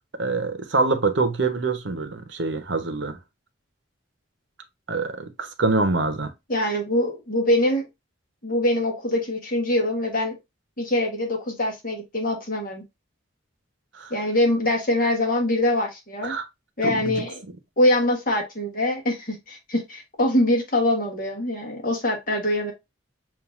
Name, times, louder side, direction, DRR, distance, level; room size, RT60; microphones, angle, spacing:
voice 1, 0.1-3.2 4.9-6.3 13.9-14.1 16.2-16.4 16.8-17.2, right 3 dB, 65° right, 0.9 m, -25 dB
voice 2, 6.5-7.8 8.4-10.4 10.8-12.8 14.1-16.3 16.8-17.3 17.8-22.7, left 1 dB, 45° left, 1.2 m, -23 dB
7.1 x 2.6 x 2.4 m
head